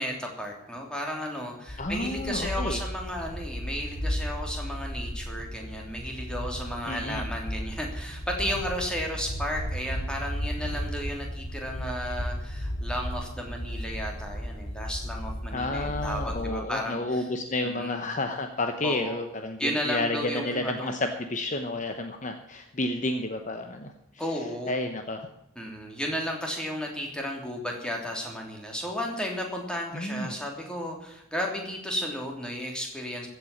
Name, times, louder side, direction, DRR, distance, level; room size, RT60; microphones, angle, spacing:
voice 1, 0.0-17.3 17.6-18.0 18.8-19.2 19.6-21.0 24.2-24.8 25.5-33.3, equal, 5° left, 0 dB, 3.0 m, -33 dB
sound 1, 1.7-16.4, equal, 85° left, 3.1 m, -35 dB
voice 2, 1.8-2.8 6.9-7.2 15.5-24.2 24.7-25.3 29.9-30.4, left 2 dB, 35° left, 6 dB, 0.9 m, -31 dB
15.5 x 8.1 x 7.2 m, 0.83 s
head